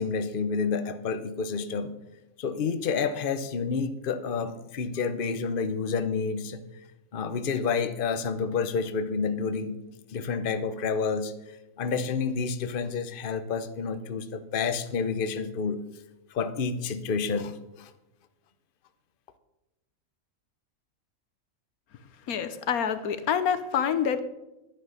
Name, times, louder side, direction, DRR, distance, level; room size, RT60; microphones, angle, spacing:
voice 1, 0.0-1.9 2.4-6.6 7.1-9.8 10.1-11.3 11.8-15.8 16.3-17.9, left 5 dB, 45° left, 10 dB, 0.9 m, -29 dB
voice 2, 22.3-24.2, left 8 dB, 90° left, 11 dB, 1.4 m, -27 dB
11.0 x 9.7 x 6.7 m, 0.97 s
omnidirectional pair, 1.5 m